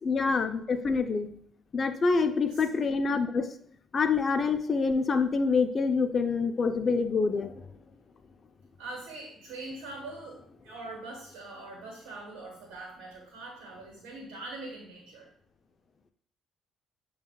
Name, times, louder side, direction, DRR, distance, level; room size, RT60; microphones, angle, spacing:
voice 1, 0.0-1.3 1.7-3.5 3.9-7.5, left 4 dB, 45° left, 8 dB, 0.4 m, -26 dB
voice 2, 2.5-2.9 8.8-15.3, right 2 dB, 85° right, -1 dB, 1.0 m, -43 dB
6.8 x 2.4 x 2.3 m, 0.63 s
supercardioid pair, 60°, 0 cm